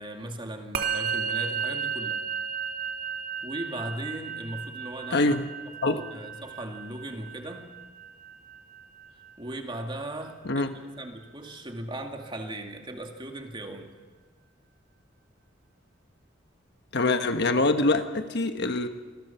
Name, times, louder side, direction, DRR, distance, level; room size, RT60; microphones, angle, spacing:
voice 1, 0.0-2.2 3.4-5.4 5.8-7.7 9.4-10.7 11.0-13.9, right 1 dB, 25° right, 3 dB, 2.2 m, -38 dB
Musical instrument, 0.7-10.3, right 7 dB, 55° right, 2.6 m, -34 dB
voice 2, 5.1-5.4 5.8-6.0 10.4-10.7 16.9-18.9, left 2 dB, 60° left, 7 dB, 1.3 m, -24 dB
26.5 x 20.0 x 5.8 m, 1.4 s
head